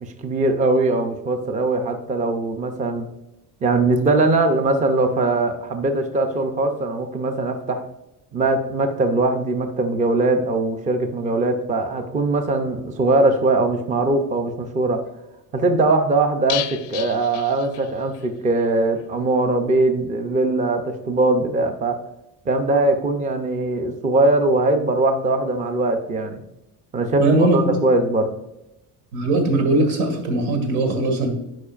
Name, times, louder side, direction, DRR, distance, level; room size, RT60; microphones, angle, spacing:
voice 1, 0.0-3.1 3.6-7.9 8.3-15.0 15.5-22.0 22.5-26.4 26.9-28.3, right 2 dB, 20° right, 6 dB, 0.5 m, -21 dB
sound 1, 16.5-18.3 18.6-18.7 19.0-19.1, left 13 dB, 45° left, 0.4 m, -32 dB
voice 2, 27.2-27.8 29.1-31.3, right 2 dB, 90° right, 4 dB, 2.0 m, -20 dB
11.5 x 5.1 x 2.4 m, 0.88 s
cardioid pair, 170°, 36 cm